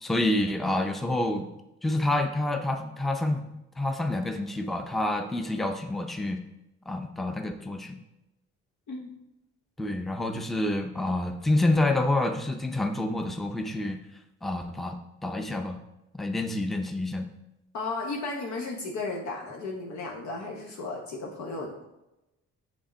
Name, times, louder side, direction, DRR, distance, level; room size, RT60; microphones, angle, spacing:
voice 1, 0.0-1.5 1.8-3.4 3.8-6.4 6.9-8.0 9.8-14.0 14.4-15.0 15.2-15.8 16.1-17.3, left 1 dB, ahead, 6 dB, 0.5 m, -28 dB
voice 2, 17.7-21.8, left 3 dB, 70° left, 0 dB, 1.0 m, -34 dB
6.2 x 3.6 x 4.2 m, 0.93 s
cardioid pair, 90°, 30 cm